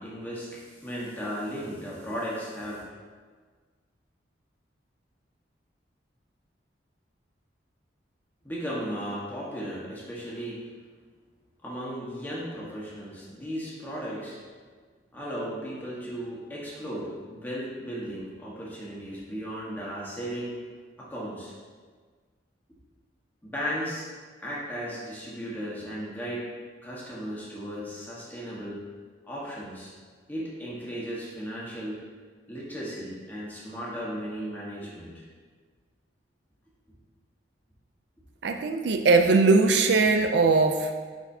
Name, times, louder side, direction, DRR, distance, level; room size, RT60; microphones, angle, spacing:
voice 1, 0.0-2.8 8.4-10.6 11.6-14.4 15.1-20.6 21.0-21.5 23.4-24.1 24.4-26.5 26.8-28.8 29.2-29.9 30.3-32.0 32.5-35.2, equal, 10° left, -6 dB, 1.3 m, -35 dB
voice 2, 38.4-40.9, right 3 dB, 70° right, 6 dB, 0.4 m, -20 dB
9.0 x 4.1 x 2.7 m, 1.5 s
head